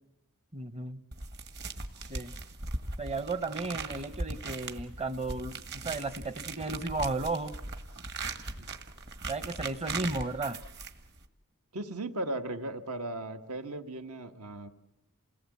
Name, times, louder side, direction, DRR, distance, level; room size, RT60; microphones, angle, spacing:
voice 1, 0.5-1.0 2.1-2.3 3.0-7.5 9.3-10.6, right 3 dB, 30° right, 14 dB, 0.8 m, -34 dB
sound 1, 1.1-11.3, right 3 dB, 50° right, 1.8 m, -39 dB
voice 2, 11.7-14.7, right 2 dB, 75° right, 7 dB, 1.5 m, -37 dB
28.5 x 19.0 x 8.4 m, 0.90 s
head